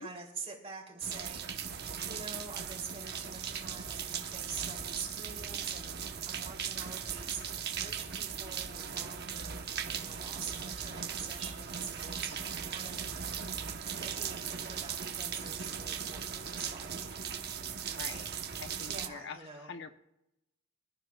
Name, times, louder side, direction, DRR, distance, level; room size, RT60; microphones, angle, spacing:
voice 1, 0.0-13.5 13.9-17.1 18.8-19.7, right 5 dB, 30° right, 0 dB, 3.1 m, -46 dB
sound 1, 1.0-19.1, right 7 dB, 50° right, 1.1 m, -38 dB
voice 2, 17.9-18.3 18.6-19.9, left 5 dB, 55° left, 7 dB, 0.9 m, -45 dB
25.5 x 14.0 x 2.4 m, 0.86 s
head